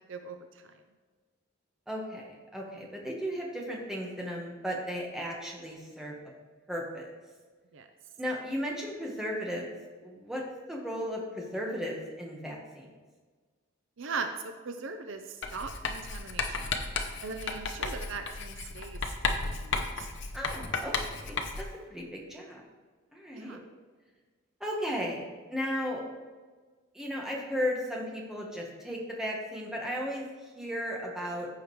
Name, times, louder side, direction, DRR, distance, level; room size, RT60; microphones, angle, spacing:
voice 1, 1.9-6.2 6.7-7.1 8.2-9.7 10.0-10.4 10.7-12.9 20.3-21.6 21.9-22.6 23.1-23.6 24.6-26.0 26.9-30.3 30.6-31.5, equal, ahead, -2 dB, 1.3 m, -35 dB
voice 2, 14.0-16.8 17.2-20.1 23.3-23.6, right 4 dB, 60° right, 6 dB, 0.6 m, -40 dB
Writing, 15.4-21.8, left 4 dB, 55° left, 0.8 m, -34 dB
15.0 x 5.0 x 3.2 m, 1.4 s
head